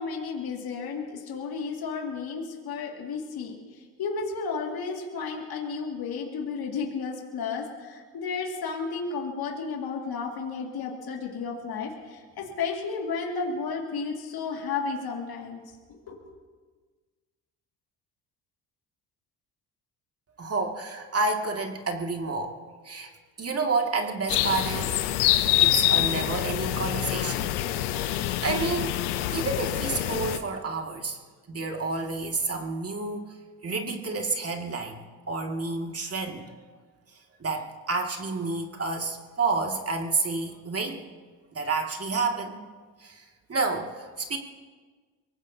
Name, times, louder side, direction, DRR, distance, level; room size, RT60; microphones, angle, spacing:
voice 1, 0.0-16.2, left 5 dB, 60° left, 1 dB, 2.4 m, -33 dB
voice 2, 20.4-22.6 22.8-23.1 23.4-25.0 25.6-27.5 27.9-31.2 31.5-33.3 33.6-35.0 35.3-36.5 37.4-41.0 41.5-42.6 43.0-44.4, right 3 dB, 35° right, 2 dB, 2.3 m, -30 dB
sound 1, 24.3-30.4, left 14 dB, 85° left, 0.8 m, -26 dB
23.5 x 19.0 x 2.8 m, 1.5 s
hypercardioid pair, 60°, 42 cm